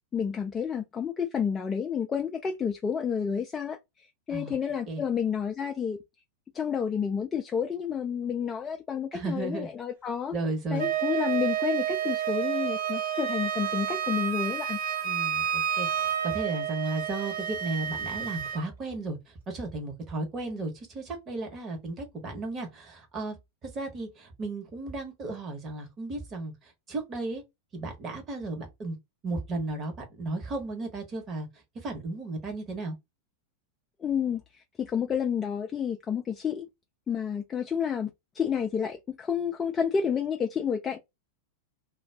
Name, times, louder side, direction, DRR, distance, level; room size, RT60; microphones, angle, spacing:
voice 1, 0.1-6.0 6.5-10.3 10.7-14.8 34.0-36.7 37.1-41.0, left 7 dB, 20° left, 0.4 m, -30 dB
voice 2, 9.1-9.7 10.3-10.9 15.0-23.4 23.6-27.4 27.7-29.0 29.2-31.5 31.8-33.0, right 2 dB, 25° right, 1.1 m, -34 dB
Wind instrument woodwind instrument, 10.8-18.6, right 10 dB, 60° right, 1.1 m, -30 dB
2.3 x 2.3 x 3.4 m
figure-of-eight pair, 90°, 0 cm